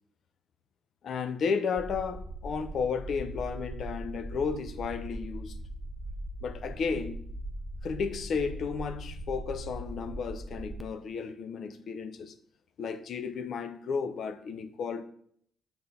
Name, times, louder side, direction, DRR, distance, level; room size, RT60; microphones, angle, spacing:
voice 1, 1.0-5.5 6.4-7.2 7.8-12.3 12.8-15.0, left 5 dB, 60° left, 0.7 m, -33 dB
sound 1, 1.8-10.8, right 1 dB, 10° right, 0.7 m, -40 dB
6.9 x 3.9 x 5.5 m
cardioid pair, 90°, 0 cm